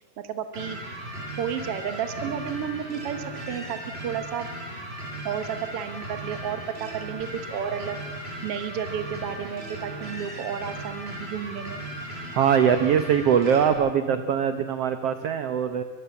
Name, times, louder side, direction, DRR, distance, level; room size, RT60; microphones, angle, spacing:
voice 1, 0.3-0.8 1.4-4.5 5.2-8.0 8.4-11.8, right 8 dB, 60° right, 9 dB, 1.6 m, -32 dB
sound 1, 0.5-13.7, right 1 dB, 15° right, 4.9 m, -37 dB
voice 2, 12.3-15.8, right 8 dB, 80° right, 9 dB, 1.4 m, -22 dB
23.5 x 23.0 x 7.0 m, 1.4 s
omnidirectional pair, 4.1 m